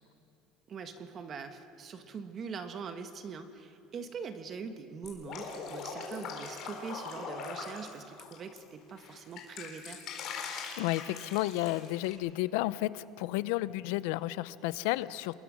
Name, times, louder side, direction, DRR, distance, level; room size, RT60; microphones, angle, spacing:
voice 1, 0.7-10.0, right 5 dB, 30° right, 8 dB, 1.3 m, -43 dB
Drip, 5.0-8.6 9.0-12.1, left 5 dB, 40° left, 3.9 m, -41 dB
voice 2, 10.8-15.4, left 17 dB, 80° left, 17 dB, 0.6 m, -32 dB
27.0 x 21.0 x 6.3 m, 2.6 s
cardioid pair, 170°, 0 cm